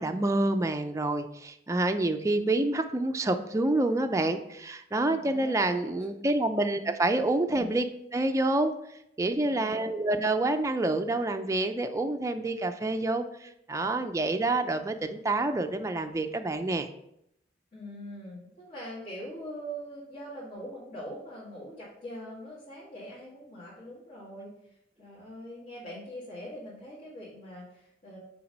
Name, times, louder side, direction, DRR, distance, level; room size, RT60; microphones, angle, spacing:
voice 1, 0.0-7.9 8.1-16.9, right 2 dB, 20° right, 6 dB, 0.4 m, -28 dB
voice 2, 5.0-5.9 7.5-7.7 9.4-9.9 17.7-24.5 25.0-28.2, equal, 50° left, -10 dB, 2.1 m, -42 dB
5.8 x 4.0 x 5.3 m, 0.78 s
head